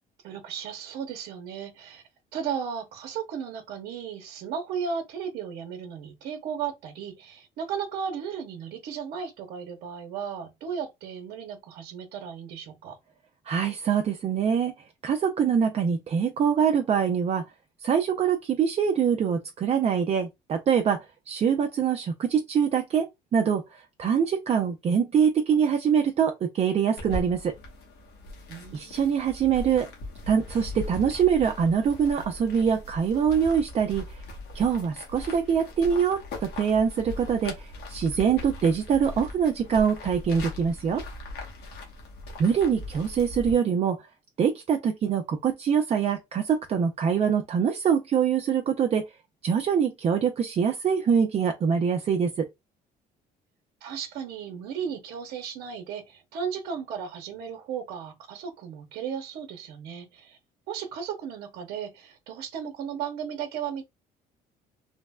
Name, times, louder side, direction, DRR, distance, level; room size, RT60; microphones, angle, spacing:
voice 1, 0.2-2.0 2.3-13.0 28.5-29.1 53.8-60.4 60.7-63.9, right 7 dB, 75° right, 0.8 m, -35 dB
voice 2, 13.5-14.7 15.0-17.4 17.8-27.5 28.7-29.9 30.3-34.2 34.5-41.0 42.4-44.1 44.4-49.0 49.4-52.5, right 7 dB, 40° right, 0.5 m, -24 dB
sound 1, 27.0-43.5, left 2 dB, 85° left, 1.1 m, -40 dB
3.3 x 2.0 x 2.2 m
cardioid pair, 110°, 17 cm